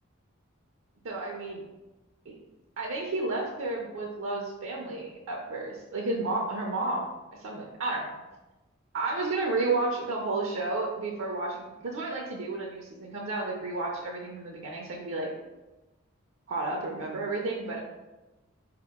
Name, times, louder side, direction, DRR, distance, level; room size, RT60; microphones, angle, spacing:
voice 1, 1.0-1.6 2.3-2.4 2.8-8.2 8.9-15.3 16.5-17.8, right 2 dB, 65° right, 0 dB, 0.5 m, -32 dB
4.4 x 2.8 x 3.5 m, 1.1 s
head